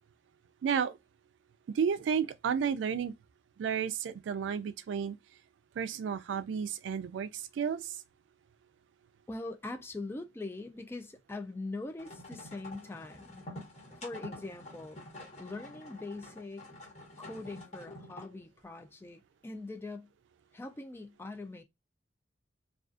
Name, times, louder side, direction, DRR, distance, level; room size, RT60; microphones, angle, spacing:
voice 1, 0.6-1.0 1.7-3.1 3.6-5.2 5.8-8.0, right 7 dB, 90° right, 0.3 m, -32 dB
voice 2, 9.3-13.4 13.9-15.0 15.4-16.7 17.2-20.1 20.5-21.6, left 2 dB, 15° left, 0.3 m, -42 dB
sound 1, 12.0-18.4, left 1 dB, 40° left, 1.2 m, -48 dB
2.4 x 2.3 x 2.4 m
head